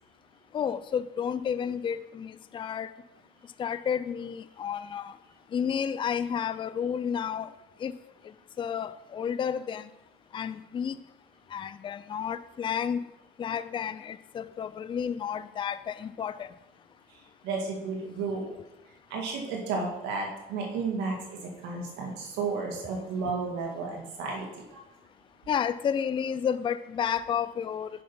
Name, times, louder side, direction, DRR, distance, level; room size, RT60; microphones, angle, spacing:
voice 1, 0.5-2.9 3.6-5.1 5.5-7.5 7.8-7.9 8.6-9.9 10.3-11.0 11.5-13.0 13.4-16.5 25.5-27.9, left 8 dB, 30° left, 14 dB, 0.4 m, -31 dB
voice 2, 17.4-18.5 19.1-24.8, right 4 dB, 90° right, 0 dB, 2.1 m, -33 dB
9.2 x 5.7 x 5.5 m, 0.95 s
cardioid pair, 110°, 17 cm